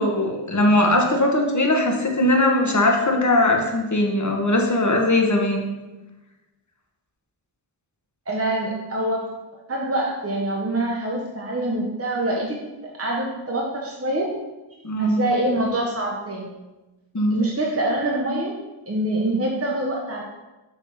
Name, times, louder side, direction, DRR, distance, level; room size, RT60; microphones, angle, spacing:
voice 1, 0.0-5.6 14.8-15.2 17.1-17.4, left 1 dB, 35° left, 2 dB, 1.4 m, -20 dB
voice 2, 8.3-9.3 9.7-12.6 12.8-14.3 15.0-16.5 17.3-18.5 18.9-20.2, right 1 dB, 30° right, -2 dB, 1.1 m, -25 dB
7.1 x 3.5 x 5.6 m, 1.1 s
cardioid pair, 55°, 49 cm